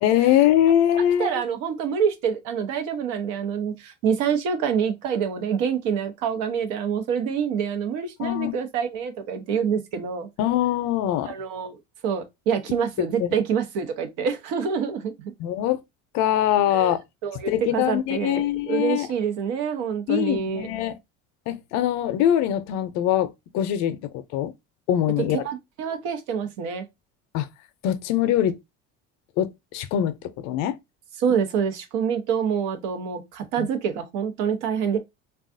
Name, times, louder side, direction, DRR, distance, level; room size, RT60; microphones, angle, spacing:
voice 1, 0.0-1.3 8.2-8.5 10.4-11.3 13.0-13.3 15.4-15.8 16.1-17.0 17.5-19.1 20.1-20.9 21.5-24.0 24.3-24.5 24.9-25.4 27.3-27.5 27.8-28.6 29.4-30.1 30.4-30.8 33.6-33.7, left 11 dB, 65° left, 0.5 m, -22 dB
voice 2, 1.2-10.3 11.2-15.3 16.7-16.9 17.2-20.7 25.4-26.8 31.2-35.0, right 7 dB, 75° right, 0.9 m, -26 dB
3.5 x 2.3 x 2.5 m
cardioid pair, 150°, 30 cm